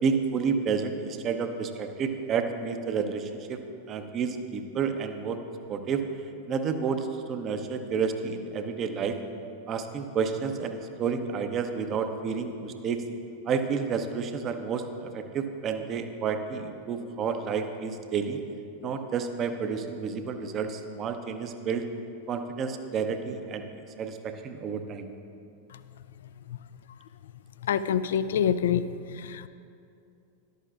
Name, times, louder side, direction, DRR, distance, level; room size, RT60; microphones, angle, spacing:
voice 1, 0.0-3.6 3.9-5.4 5.7-6.0 6.5-9.2 9.7-13.0 13.5-18.4 18.8-21.9 22.3-23.7 24.0-25.1, right 6 dB, 30° right, 7 dB, 0.7 m, -30 dB
voice 2, 27.6-28.8 29.1-29.5, left 8 dB, 60° left, 14 dB, 0.3 m, -26 dB
13.0 x 11.5 x 2.5 m, 2.5 s
figure-of-eight pair, 90°, 0 cm